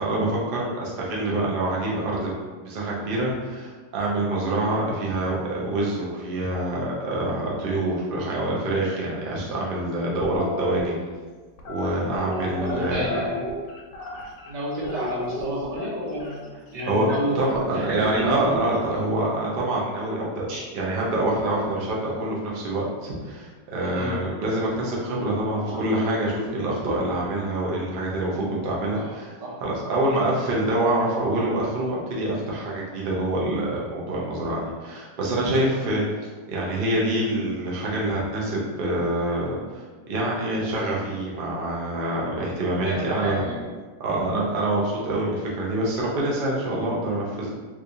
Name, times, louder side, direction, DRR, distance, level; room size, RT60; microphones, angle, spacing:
voice 1, 0.0-2.3 2.6-11.0 11.7-13.0 16.9-17.1 17.3-20.5 20.7-29.3 29.6-36.0 36.5-39.6 40.1-43.5 44.0-47.5, right 1 dB, 55° right, -4 dB, 0.6 m, -26 dB
sound 1, 10.2-10.8 11.6-14.5 14.8-16.3 17.5-18.9, left 2 dB, 80° left, 1.2 m, -34 dB
voice 2, 12.6-13.5 14.5-18.7 20.2-20.6 23.8-24.2 25.7-25.8 28.9-29.1 29.4-29.6 30.1-30.2 42.4-42.5 42.8-43.6, equal, 80° right, -5 dB, 1.6 m, -30 dB
3.5 x 3.1 x 2.6 m, 1.4 s
omnidirectional pair, 1.9 m